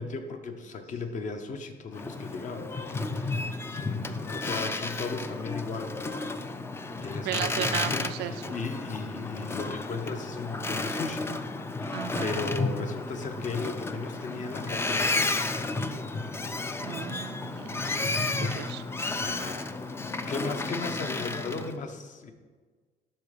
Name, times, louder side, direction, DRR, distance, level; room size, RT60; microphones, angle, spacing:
voice 1, 0.0-6.0 6.9-11.3 11.7-15.5 19.1-19.7 20.3-22.3, left 4 dB, 45° left, 6 dB, 1.0 m, -36 dB
Boat Water vehicle, 1.9-21.7, left 3 dB, 15° left, 0.4 m, -32 dB
voice 2, 7.2-8.3 11.9-12.5 16.8-17.9 18.1-18.8 19.4-19.5, right 13 dB, 80° right, 11 dB, 0.4 m, -35 dB
11.5 x 4.2 x 5.1 m, 1.4 s
cardioid pair, 110°, 17 cm